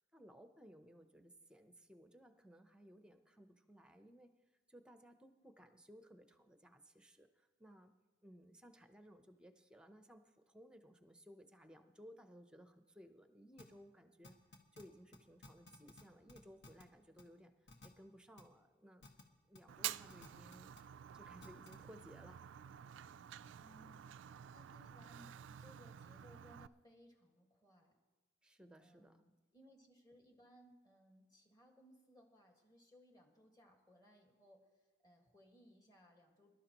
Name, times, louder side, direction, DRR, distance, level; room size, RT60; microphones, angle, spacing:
voice 1, 0.0-4.3 4.7-7.9 8.2-14.4 14.7-17.5 17.8-19.1 19.5-20.7 21.1-22.4 28.4-29.2, equal, 5° right, 7 dB, 0.7 m, -60 dB
sound 1, 13.6-13.7 14.2-14.8 15.1-15.2 15.4-16.0 16.3-16.8 17.2-17.3 17.7-17.9 18.4-18.5 19.0-19.2 19.5-19.6 20.1-20.8 21.4-21.8, left 2 dB, 70° left, 1.6 m, -56 dB
Fire, 19.7-26.7, right 11 dB, 75° right, 0.3 m, -50 dB
voice 2, 23.6-28.0 28.8-36.5, equal, 20° left, 1 dB, 1.7 m, -65 dB
24.0 x 12.0 x 3.0 m, 1.2 s
head